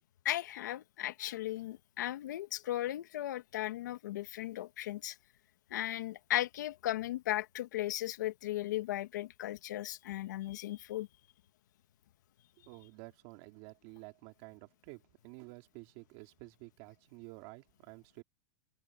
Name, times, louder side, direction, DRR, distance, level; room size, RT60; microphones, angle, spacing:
voice 1, 0.3-5.2 5.7-11.1, left 14 dB, 80° left, 1.7 m, -36 dB
voice 2, 12.6-18.2, right 25 dB, 45° right, 3.4 m, -51 dB
supercardioid pair, 155°, 10 cm